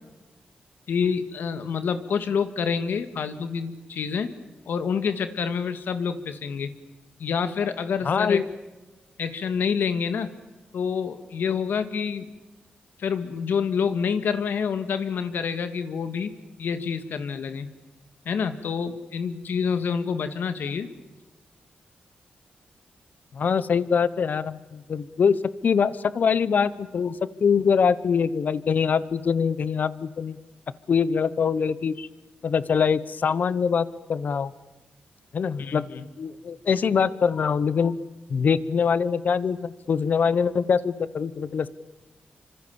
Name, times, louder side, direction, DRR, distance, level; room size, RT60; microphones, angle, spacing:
voice 1, 0.9-4.3 4.7-6.7 7.2-8.4 9.2-10.3 10.7-12.3 13.0-16.3 16.6-17.7 18.3-20.9 35.6-36.0, left 6 dB, 80° left, 10 dB, 1.8 m, -27 dB
voice 2, 8.0-8.4 23.3-30.4 30.9-32.1 32.4-34.5 35.3-35.8 36.2-38.0 38.3-41.7, left 6 dB, 60° left, 17 dB, 1.0 m, -23 dB
26.0 x 25.5 x 7.1 m, 1.1 s
cardioid pair, 100°, 3 cm